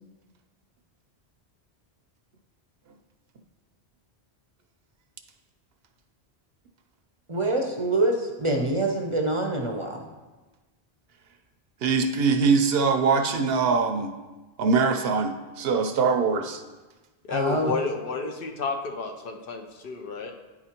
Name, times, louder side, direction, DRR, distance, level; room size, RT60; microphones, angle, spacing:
voice 1, 7.3-10.0 17.3-17.7, right 2 dB, 35° right, 2 dB, 0.5 m, -25 dB
voice 2, 11.8-14.1 14.6-16.6, right 5 dB, 70° right, 7 dB, 0.8 m, -22 dB
voice 3, 17.3-20.3, left 4 dB, 60° left, 4 dB, 0.8 m, -31 dB
9.6 x 4.8 x 2.9 m, 1.2 s
omnidirectional pair, 1.1 m